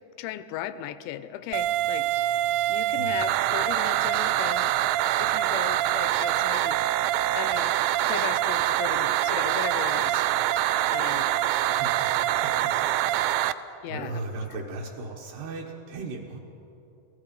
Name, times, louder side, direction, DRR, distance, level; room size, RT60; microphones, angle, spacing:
voice 1, 0.2-2.1 2.7-6.8 7.4-7.8 8.1-10.2 10.9-11.3 13.8-14.2 14.5-14.6, left 12 dB, 85° left, 13 dB, 3.0 m, -36 dB
sound 1, 1.5-13.5, right 13 dB, 90° right, 2.2 m, -25 dB
voice 2, 11.6-12.1 12.4-12.8 13.6-16.4, right 3 dB, 70° right, -2 dB, 3.2 m, -37 dB
27.0 x 18.0 x 5.3 m, 2.9 s
omnidirectional pair, 5.2 m